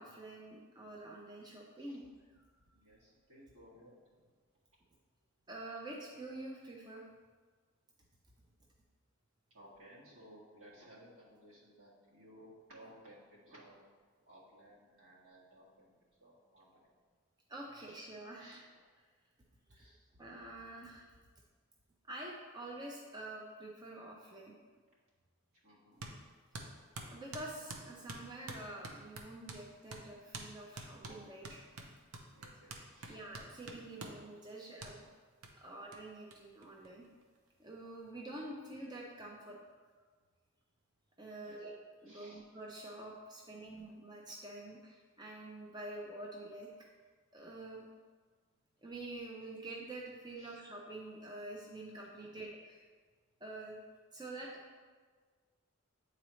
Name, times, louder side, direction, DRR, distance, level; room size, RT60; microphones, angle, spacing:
voice 1, 0.0-2.0 5.5-7.0 17.5-18.6 20.2-21.1 22.1-24.6 27.1-31.7 33.1-35.1 35.5-37.1 37.6-39.6 41.2-41.7 42.0-46.7 47.3-47.9 48.8-52.9 53.4-53.8 54.1-54.5, right 2 dB, 20° right, -2 dB, 0.5 m, -47 dB
voice 2, 2.3-3.9 4.2-4.3 9.5-13.8 14.3-15.9 16.2-16.9 17.9-18.0 18.4-18.6 19.7-20.1 25.6-26.0 32.3-33.2 40.0-40.1 41.3-41.7 42.1-42.4 43.6-43.8 50.4-50.6 52.2-52.4, equal, 70° right, -7 dB, 1.9 m, -59 dB
sound 1, 26.0-26.2 26.5-29.6 29.9-30.1 30.3-30.5 30.8-34.2 34.8-34.9 35.4-35.5 35.9-36.0 36.3-36.4 36.6-37.4, right 2 dB, 90° right, 0.7 m, -47 dB
8.7 x 3.9 x 3.1 m, 1.5 s
head